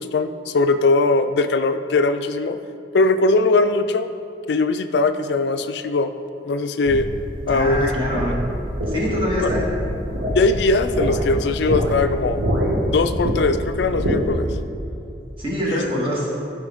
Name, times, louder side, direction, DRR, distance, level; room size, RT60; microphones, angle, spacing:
voice 1, 0.0-2.6 2.9-4.1 4.5-6.1 6.4-7.1 7.5-7.9 9.4-9.5 10.3-12.4 12.9-14.5 15.7-15.8, left 3 dB, 70° left, 9 dB, 0.4 m, -20 dB
sound 1, 6.9-14.6, equal, 65° right, 1.6 m, -25 dB
voice 2, 7.5-8.3 8.9-9.7 15.4-16.3, equal, 30° right, -4 dB, 1.8 m, -24 dB
13.5 x 5.8 x 3.6 m, 2.6 s
head